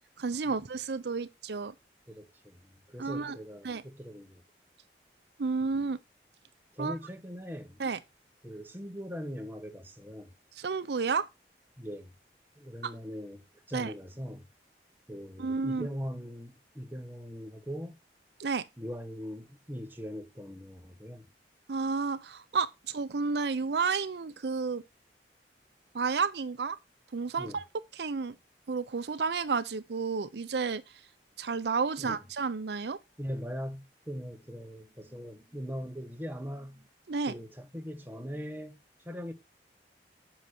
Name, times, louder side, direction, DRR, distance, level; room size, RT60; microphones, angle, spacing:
voice 1, 0.2-1.7 3.0-3.4 3.6-3.8 5.4-6.0 6.8-7.0 7.8-8.0 10.5-11.3 12.8-12.9 13.7-13.9 15.4-15.9 18.4-18.7 21.7-24.8 25.9-26.8 27.1-27.6 27.9-28.4 28.7-30.8 31.4-33.0 37.1-37.4, right 4 dB, 70° right, 0.6 m, -31 dB
voice 2, 2.1-4.4 5.6-5.7 6.7-7.8 8.4-10.3 11.8-12.1 12.6-13.4 13.7-14.4 15.1-17.9 18.8-21.2 27.4-27.6 32.0-32.2 33.2-36.9 37.3-38.8 39.0-39.3, equal, 10° right, 1.4 m, -40 dB
9.4 x 6.6 x 4.3 m
head